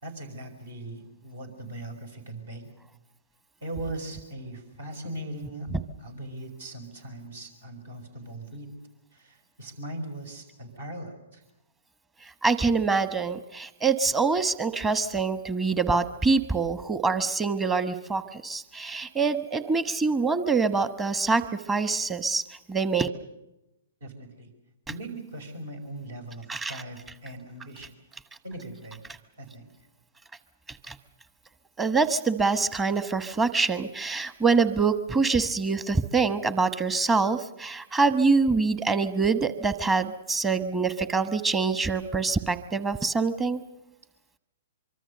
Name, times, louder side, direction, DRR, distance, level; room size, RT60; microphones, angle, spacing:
voice 1, 0.0-2.7 3.6-5.7 6.0-8.7 9.1-11.4 24.0-24.5 24.9-27.9 28.4-29.0 29.4-29.7, right 1 dB, 70° right, 6 dB, 5.2 m, -39 dB
voice 2, 12.4-22.4 22.7-23.1 26.5-26.8 30.9-31.0 31.8-43.6, right 4 dB, 15° right, 12 dB, 1.1 m, -25 dB
24.5 x 23.5 x 6.7 m, 0.91 s
figure-of-eight pair, 115°, 0 cm